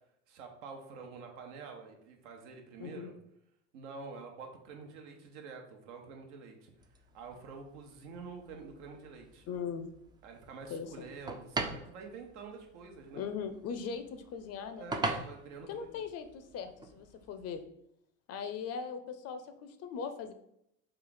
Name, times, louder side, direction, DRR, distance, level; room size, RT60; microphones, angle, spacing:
voice 1, 0.3-3.1 3.7-6.7 7.1-9.5 10.2-13.2 14.8-16.1, right 4 dB, 75° right, 3 dB, 0.9 m, -47 dB
voice 2, 2.8-3.1 9.5-9.9 10.7-11.1 13.1-14.9 15.7-17.6 18.3-20.3, left 6 dB, 45° left, 8 dB, 0.5 m, -39 dB
sound 1, 6.8-17.6, right 3 dB, 15° right, 0.3 m, -43 dB
3.2 x 2.4 x 3.9 m, 0.75 s
hypercardioid pair, 85°, 37 cm